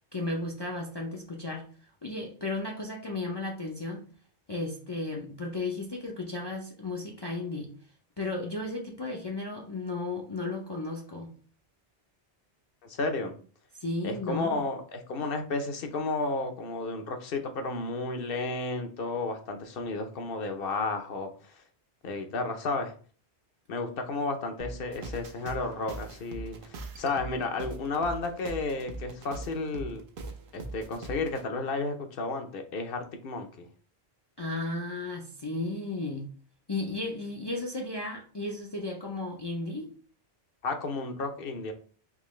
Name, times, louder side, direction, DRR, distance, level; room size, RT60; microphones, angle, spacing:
voice 1, 0.1-1.7 2.0-4.0 4.5-7.7 8.2-11.3 13.7-14.6 34.4-36.3 36.7-39.9, left 2 dB, 35° left, 0 dB, 0.5 m, -34 dB
voice 2, 12.8-13.3 14.0-21.5 22.0-22.9 23.7-30.0 30.5-33.7 40.6-41.7, left 3 dB, 65° left, 6 dB, 0.9 m, -32 dB
sound 1, 24.6-31.4, right 3 dB, 60° right, 0.8 m, -41 dB
3.7 x 2.9 x 3.1 m, 0.41 s
omnidirectional pair, 1.1 m